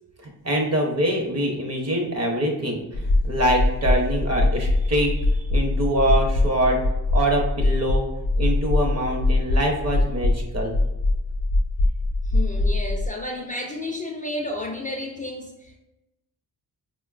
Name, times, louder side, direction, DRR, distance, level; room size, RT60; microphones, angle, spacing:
voice 1, 0.4-6.8 7.1-8.0 8.4-10.7, right 1 dB, 40° right, 2 dB, 0.8 m, -24 dB
sound 1, 2.9-13.1, left 2 dB, 90° left, 0.5 m, -22 dB
voice 2, 12.3-15.8, left 1 dB, 20° left, 0 dB, 0.4 m, -32 dB
4.1 x 2.2 x 2.4 m, 0.98 s
cardioid pair, 70°, 40 cm